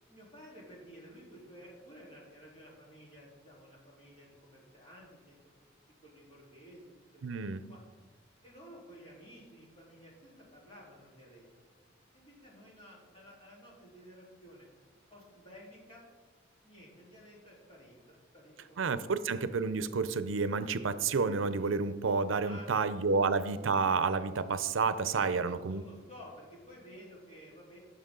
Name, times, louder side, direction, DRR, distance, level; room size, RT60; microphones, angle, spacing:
voice 1, 0.0-5.7 6.0-7.8 8.4-11.4 12.1-14.7 15.1-16.0 16.6-19.3 22.4-23.3 25.1-27.8, equal, 30° left, -5 dB, 3.6 m, -53 dB
voice 2, 7.2-7.7 18.8-25.8, right 4 dB, 90° right, 13 dB, 0.6 m, -30 dB
16.0 x 6.6 x 3.8 m, 1.4 s
head